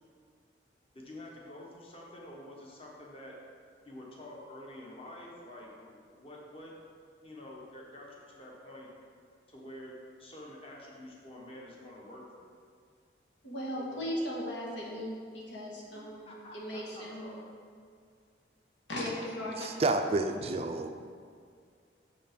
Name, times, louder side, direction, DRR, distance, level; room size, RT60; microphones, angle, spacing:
voice 1, 0.9-3.4 3.8-6.8 7.2-8.9 9.5-12.5 16.3-17.5, left 1 dB, 30° left, -2 dB, 1.2 m, -48 dB
voice 2, 13.4-17.3 18.9-19.7, equal, 90° left, -4 dB, 1.6 m, -37 dB
voice 3, 19.6-20.9, right 2 dB, 35° right, 6 dB, 0.3 m, -29 dB
6.4 x 5.5 x 5.1 m, 2.2 s
head